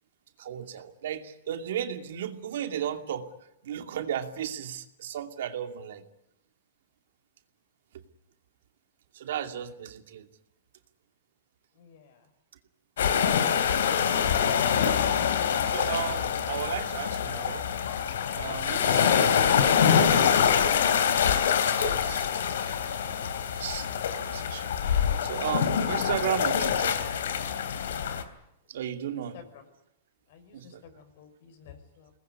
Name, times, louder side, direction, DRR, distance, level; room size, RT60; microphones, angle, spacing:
voice 1, 0.4-3.3 3.6-6.0 7.9-8.0 9.1-10.3 15.4-17.7 18.3-21.2 21.8-22.3 22.9-27.1 28.7-29.4 30.5-30.8, right 9 dB, 75° right, 7 dB, 2.6 m, -35 dB
voice 2, 11.8-12.3 29.1-29.6 30.3-32.1, left 7 dB, 55° left, 8 dB, 5.9 m, -52 dB
sound 1, 13.0-28.2, left 8 dB, 85° left, 3.2 m, -25 dB
24.0 x 20.0 x 9.7 m, 0.82 s
supercardioid pair, 155°, 0 cm